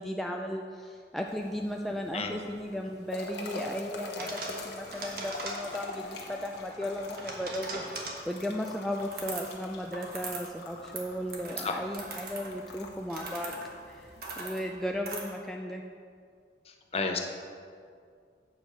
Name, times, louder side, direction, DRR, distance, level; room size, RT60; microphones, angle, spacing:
voice 1, 0.0-13.6 13.9-14.1 14.4-15.8, equal, ahead, 1 dB, 0.3 m, -35 dB
sound 1, 1.3-14.2, left 2 dB, 70° left, 1.1 m, -44 dB
voice 2, 2.1-2.3 11.6-11.8 16.9-17.2, left 4 dB, 35° left, 3 dB, 0.7 m, -30 dB
sound 2, 4.2-6.0 6.8-8.3 9.0-9.6 9.9-10.5 10.8-15.2, right 3 dB, 55° right, 1.3 m, -40 dB
8.3 x 4.7 x 6.5 m, 2.2 s
head